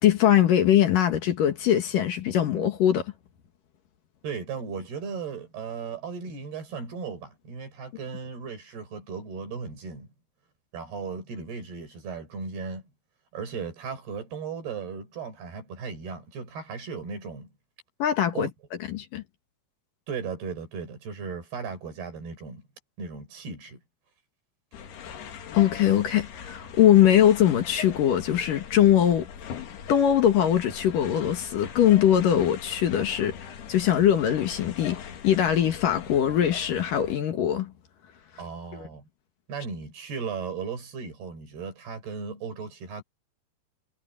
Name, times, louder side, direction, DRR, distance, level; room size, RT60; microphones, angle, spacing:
voice 1, 0.0-3.1 18.0-18.5 18.9-19.2 25.5-29.3 29.9-37.7 38.7-38.9, left 10 dB, 60° left, 3.0 m, -22 dB
voice 2, 4.2-10.1 10.7-12.8 13.3-17.5 18.3-18.5 20.1-22.7 23.0-23.8 38.4-39.0 39.5-43.0, right 5 dB, 75° right, 7.1 m, -36 dB
sound 1, 24.7-37.2, left 7 dB, 80° left, 4.4 m, -41 dB
omnidirectional pair, 4.6 m